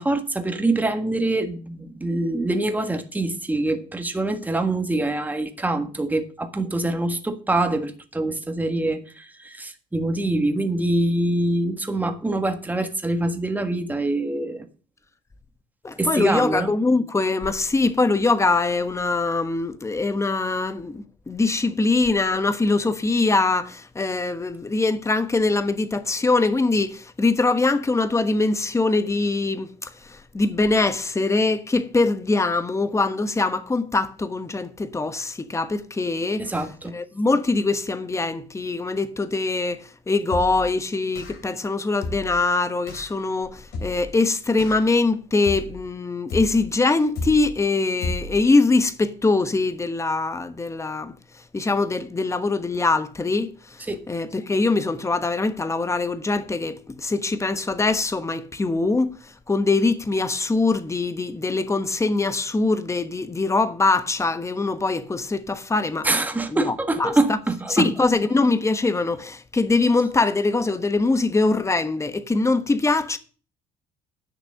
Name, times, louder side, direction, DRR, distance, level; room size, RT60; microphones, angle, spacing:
voice 1, 0.0-14.7 16.0-16.7 36.4-37.0 53.9-54.0 66.0-67.9, right 2 dB, 10° right, 1.6 m, -24 dB
voice 2, 15.8-36.5 36.9-51.1 51.5-66.1 66.5-67.4 67.7-73.2, left 3 dB, 15° left, 1.2 m, -23 dB
sound 1, 40.3-40.7 41.1-41.5 42.0-42.4 42.9-43.1 43.7-44.1 44.6-45.0 45.4-45.9 46.3-46.7 47.1-47.6 48.0-48.4, left 2 dB, 70° left, 3.6 m, -32 dB
10.5 x 6.4 x 6.4 m
cardioid pair, 110°, 17 cm